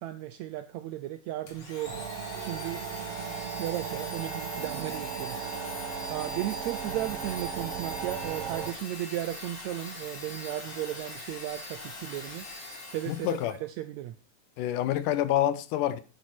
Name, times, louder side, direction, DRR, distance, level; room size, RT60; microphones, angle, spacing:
voice 1, 0.0-2.1 2.4-2.8 3.6-5.8 6.1-12.5 12.9-14.1, right 14 dB, 85° right, 1.6 m, -35 dB
Domestic sounds home sounds, 1.5-13.6, left 2 dB, 40° left, 3.8 m, -42 dB
sound 1, 1.9-8.7, right 8 dB, 65° right, 1.5 m, -37 dB
voice 2, 13.1-13.5 14.6-16.0, left 12 dB, 80° left, 2.2 m, -27 dB
10.5 x 9.4 x 4.6 m
omnidirectional pair, 3.9 m